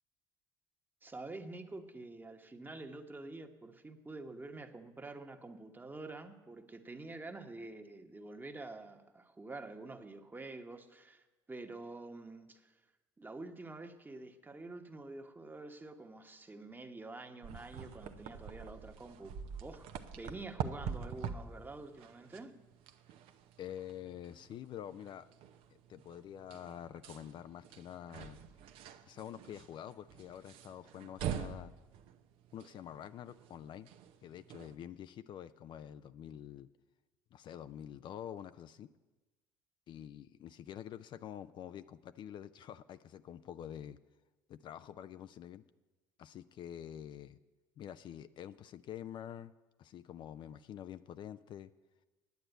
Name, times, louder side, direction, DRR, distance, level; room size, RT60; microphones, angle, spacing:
voice 1, 1.0-12.7 13.2-22.5, right 2 dB, 20° right, 6 dB, 1.2 m, -48 dB
sound 1, 17.4-34.8, right 7 dB, 65° right, 0.8 m, -46 dB
voice 2, 23.6-25.3 25.7-28.4 29.1-31.7 32.5-33.9 34.2-36.7 37.3-38.9 39.9-44.0 44.5-45.6 46.2-47.4 47.8-49.5 49.8-51.7, left 10 dB, 50° left, 12 dB, 0.4 m, -47 dB
9.5 x 8.7 x 8.1 m, 1.2 s
hypercardioid pair, 65°, 10 cm